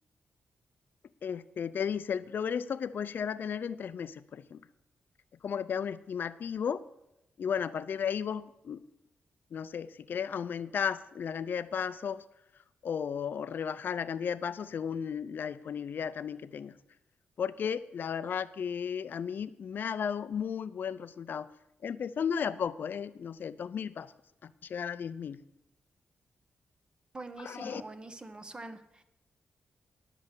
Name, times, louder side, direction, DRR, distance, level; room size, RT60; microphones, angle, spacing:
voice 1, 1.2-4.6 5.4-6.8 7.4-8.8 9.5-12.2 12.8-16.8 17.4-21.5 21.8-24.1 24.4-25.4 27.4-27.8, left 7 dB, 60° left, 15 dB, 0.4 m, -34 dB
voice 2, 27.1-29.0, right 2 dB, 25° right, 9 dB, 0.9 m, -44 dB
10.5 x 6.6 x 7.2 m, 0.87 s
wide cardioid pair, 115°, 4 cm